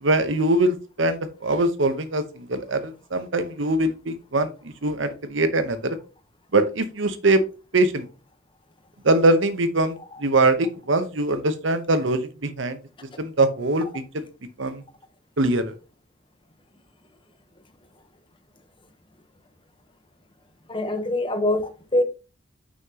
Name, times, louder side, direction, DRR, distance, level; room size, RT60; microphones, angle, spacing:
voice 1, 0.0-4.5 4.8-6.0 6.5-7.4 7.7-8.0 9.0-10.0 10.2-12.8 13.2-13.9 14.1-14.2 14.6-14.8 15.4-15.7, right 2 dB, 70° right, 10 dB, 0.9 m, -22 dB
voice 2, 20.7-22.0, left 1 dB, 25° left, 8 dB, 1.0 m, -24 dB
6.2 x 5.8 x 2.9 m, 0.31 s
head